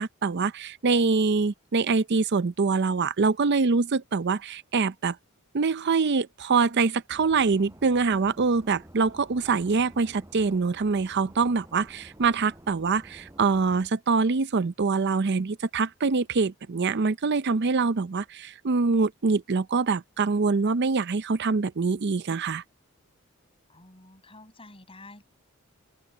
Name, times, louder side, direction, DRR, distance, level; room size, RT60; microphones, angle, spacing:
voice 1, 0.0-5.2 5.5-22.6, right 4 dB, 50° right, 0.6 m, -24 dB
sound 1, 7.1-13.9, equal, 15° right, 6.4 m, -50 dB
voice 2, 23.7-25.2, left 2 dB, 25° left, 7.8 m, -49 dB
open air
head